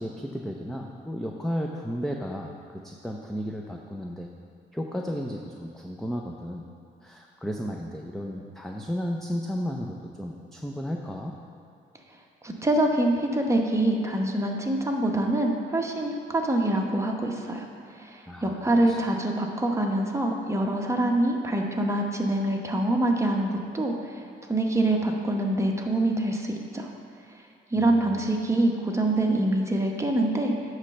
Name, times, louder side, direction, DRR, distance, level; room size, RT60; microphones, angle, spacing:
voice 1, 0.0-4.3 4.7-6.6 7.0-11.4 18.3-18.6 18.9-19.0 27.8-28.2, equal, ahead, 0 dB, 0.5 m, -33 dB
voice 2, 12.4-24.2 24.5-26.9 27.7-30.5, right 1 dB, 15° right, 1 dB, 1.0 m, -25 dB
9.8 x 3.3 x 6.4 m, 2.5 s
cardioid pair, 90°, 20 cm